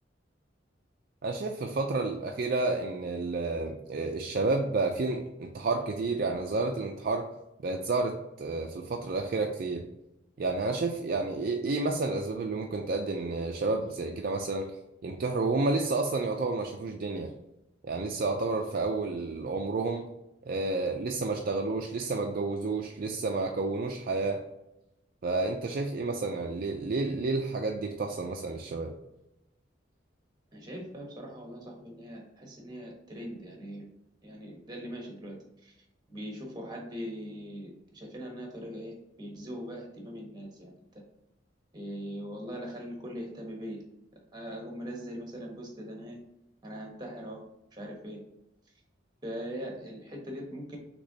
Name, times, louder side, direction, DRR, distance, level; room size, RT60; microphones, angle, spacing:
voice 1, 1.2-7.3 7.6-9.8 10.4-14.7 15.0-17.3 17.8-20.1 20.5-24.4 25.2-28.9, right 3 dB, 50° right, 2 dB, 0.4 m, -30 dB
voice 2, 30.5-33.8 34.2-35.4 35.6-35.7 36.1-40.8 41.7-43.8 44.3-46.2 46.6-47.4 47.8-48.2 49.2-50.8, equal, 20° right, 0 dB, 1.1 m, -41 dB
6.3 x 3.0 x 2.8 m, 0.87 s
head